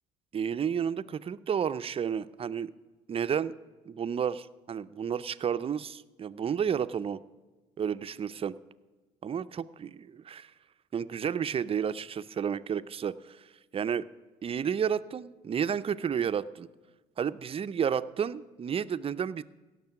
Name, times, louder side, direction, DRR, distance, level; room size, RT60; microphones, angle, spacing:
voice 1, 0.3-2.7 3.1-3.5 3.9-7.2 7.8-8.5 9.2-10.5 10.9-13.4 13.7-14.0 14.4-16.7 17.2-19.4, right 8 dB, 35° right, 14 dB, 0.5 m, -31 dB
17.0 x 6.7 x 5.8 m, 1.2 s
cardioid pair, 85°, 16 cm